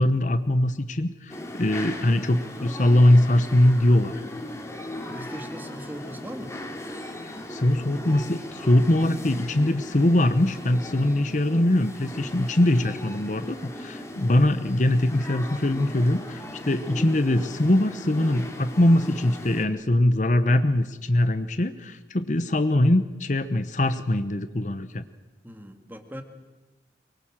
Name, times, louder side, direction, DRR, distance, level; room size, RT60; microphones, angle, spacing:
voice 1, 0.0-4.2 7.2-25.0, left 1 dB, 45° left, 11 dB, 0.9 m, -22 dB
sound 1, 1.3-19.6, left 1 dB, 15° left, 2.4 m, -38 dB
voice 2, 5.1-6.6 25.4-26.2, equal, 10° right, 6 dB, 2.0 m, -39 dB
24.5 x 22.5 x 7.5 m, 1.1 s
head